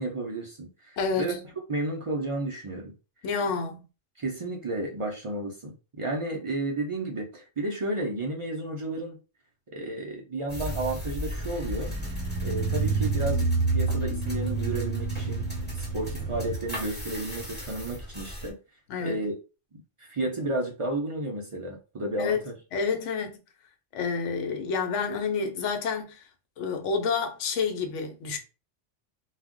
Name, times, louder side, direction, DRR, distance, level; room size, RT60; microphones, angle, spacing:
voice 1, 0.0-1.4 1.7-2.9 4.2-9.2 9.7-11.9 12.4-18.6 19.0-19.4 19.7-22.5, right 2 dB, 55° right, 0.3 m, -32 dB
voice 2, 1.0-1.4 3.2-3.8 18.9-19.2 22.2-22.4 22.7-23.4 23.9-26.2 26.6-28.4, left 5 dB, 75° left, 1.0 m, -29 dB
sound 1, 10.5-18.5, right 3 dB, 10° left, 1.0 m, -30 dB
2.3 x 2.1 x 3.6 m
omnidirectional pair, 1.3 m